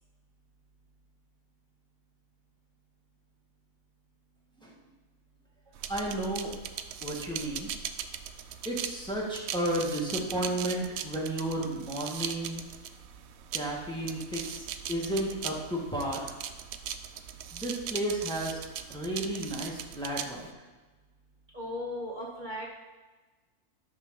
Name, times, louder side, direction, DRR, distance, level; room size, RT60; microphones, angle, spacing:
sound 1, 5.8-20.5, right 8 dB, 75° right, 1.0 m, -40 dB
voice 1, 5.9-6.5 7.0-7.7 8.6-12.6 13.5-16.2 17.5-18.6 18.9-20.5, right 1 dB, 5° left, -4 dB, 1.7 m, -33 dB
voice 2, 21.5-22.7, left 1 dB, 35° right, -4 dB, 1.5 m, -36 dB
12.5 x 6.3 x 3.8 m, 1.2 s
omnidirectional pair, 1.5 m